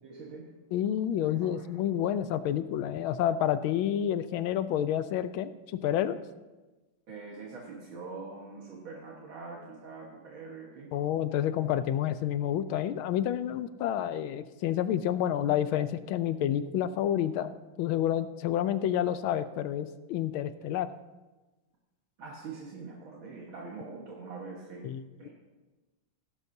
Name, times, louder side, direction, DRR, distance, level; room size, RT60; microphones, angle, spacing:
voice 1, 0.0-0.5 1.2-1.7 7.1-10.9 22.2-24.9 25.2-25.3, right 4 dB, 70° right, -3 dB, 2.2 m, -44 dB
voice 2, 0.7-6.2 10.9-20.9 24.8-25.0, left 10 dB, 80° left, 12 dB, 1.4 m, -29 dB
16.5 x 12.0 x 2.7 m, 1.2 s
omnidirectional pair, 2.3 m